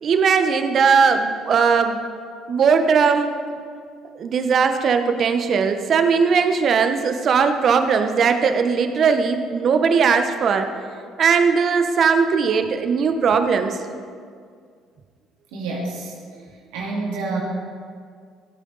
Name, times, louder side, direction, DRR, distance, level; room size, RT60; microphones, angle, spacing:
voice 1, 0.0-2.0 2.5-3.3 4.2-10.7 11.2-13.8, right 5 dB, 55° right, 7 dB, 1.0 m, -19 dB
voice 2, 15.5-16.1 16.7-17.4, right 3 dB, 85° right, -4 dB, 2.3 m, -27 dB
16.5 x 8.4 x 4.1 m, 2.1 s
supercardioid pair, 70°, 0 cm